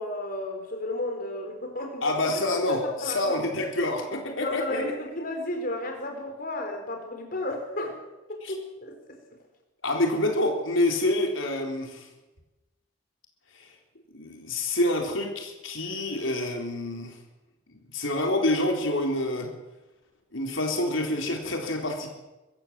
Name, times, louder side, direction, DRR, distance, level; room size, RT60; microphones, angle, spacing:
voice 1, 0.0-2.2 2.7-3.4 4.4-8.0 8.3-9.2, left 1 dB, 45° left, 3 dB, 4.2 m, -33 dB
voice 2, 2.0-4.9 8.4-8.5 9.8-12.1 13.6-13.7 14.1-17.1 17.9-19.5 20.3-22.1, left 1 dB, 85° left, 2 dB, 3.9 m, -27 dB
24.0 x 14.5 x 7.6 m, 1.1 s
head